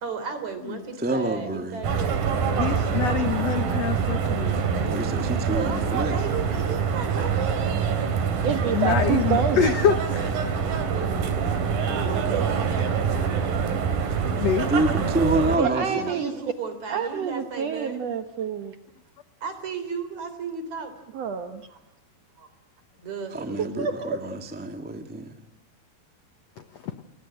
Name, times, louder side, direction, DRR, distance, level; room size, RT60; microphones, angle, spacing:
voice 1, 0.0-2.2 5.4-7.6 11.8-13.0 15.5-18.0 19.4-20.9 21.7-21.8 22.4-22.5 23.0-23.6, right 5 dB, 45° right, 9 dB, 4.5 m, -34 dB
voice 2, 1.0-1.8 4.9-6.1 14.7-16.2 23.3-25.3, right 1 dB, 5° right, 6 dB, 1.1 m, -27 dB
sound 1, 1.8-15.6, right 6 dB, 60° right, 4.1 m, -25 dB
voice 3, 2.6-4.9 8.7-10.7 14.3-14.7, left 8 dB, 85° left, 10 dB, 1.4 m, -26 dB
voice 4, 8.4-9.7 15.5-16.3 16.9-18.7 21.1-21.6 23.8-24.2, right 7 dB, 80° right, 8 dB, 1.4 m, -28 dB
29.0 x 21.5 x 9.0 m, 0.85 s
omnidirectional pair, 4.7 m